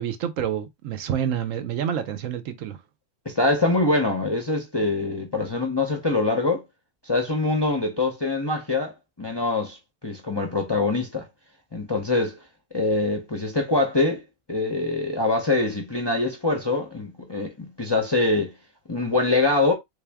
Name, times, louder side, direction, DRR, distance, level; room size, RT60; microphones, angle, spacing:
voice 1, 0.0-2.8, right 9 dB, 75° right, 1.0 m, -28 dB
voice 2, 3.3-6.6 7.0-8.9 9.2-9.8 10.0-11.3 11.7-12.4 12.7-14.2 14.5-18.5 18.9-19.7, left 2 dB, 25° left, 0.5 m, -24 dB
3.5 x 2.6 x 3.4 m
omnidirectional pair, 1.4 m